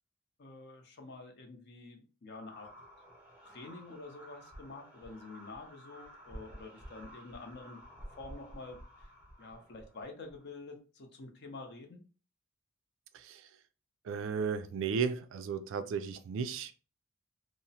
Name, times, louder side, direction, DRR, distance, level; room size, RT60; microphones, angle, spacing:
voice 1, 0.4-2.7 3.4-7.8 8.1-9.1 9.4-12.0, left 3 dB, 55° left, 0.6 m, -48 dB
sound 1, 2.4-10.4, equal, 10° right, 0.7 m, -52 dB
voice 2, 13.1-13.5 14.0-16.7, right 6 dB, 65° right, 0.3 m, -34 dB
2.8 x 2.0 x 2.7 m
head